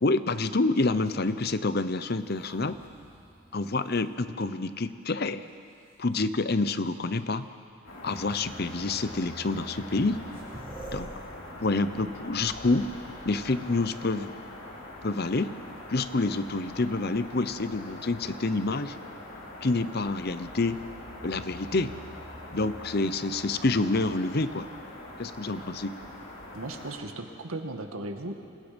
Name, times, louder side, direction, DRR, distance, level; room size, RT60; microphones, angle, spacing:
voice 1, 0.0-2.8 3.5-5.4 6.0-7.5 8.0-10.3 10.9-11.1 11.6-12.9 13.2-14.3 15.0-15.5 15.9-19.0 19.6-20.8 21.2-21.9 22.5-24.7 25.2-26.0, left 3 dB, 50° left, 12 dB, 0.8 m, -27 dB
sound 1, 0.9-4.8 5.5-6.2 7.3-7.4 8.1-8.3 9.4-9.5 9.7-14.2 16.1-16.8, right 1 dB, 15° right, 7.3 m, -49 dB
sound 2, 7.9-27.0, left 1 dB, 70° left, 4.3 m, -43 dB
voice 2, 26.5-28.4, right 2 dB, 90° right, 4 dB, 2.0 m, -36 dB
28.5 x 26.5 x 5.3 m, 2.5 s
head